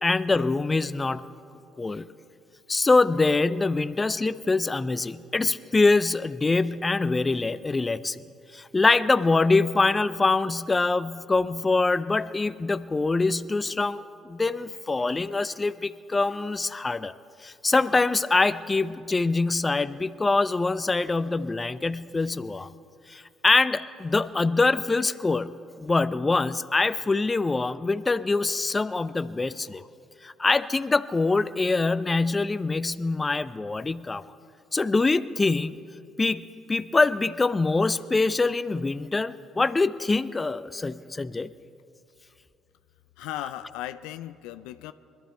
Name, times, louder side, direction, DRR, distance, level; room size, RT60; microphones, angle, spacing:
voice 1, 0.0-1.2 1.8-2.1 2.7-8.2 8.5-17.1 17.4-22.7 23.1-25.5 25.8-29.8 30.2-34.2 34.7-35.8 36.2-41.5, left 3 dB, 25° left, 14 dB, 0.5 m, -24 dB
voice 2, 43.2-44.9, left 13 dB, 80° left, 12 dB, 0.4 m, -36 dB
21.0 x 12.0 x 4.5 m, 2.7 s
supercardioid pair, 65°, 0 cm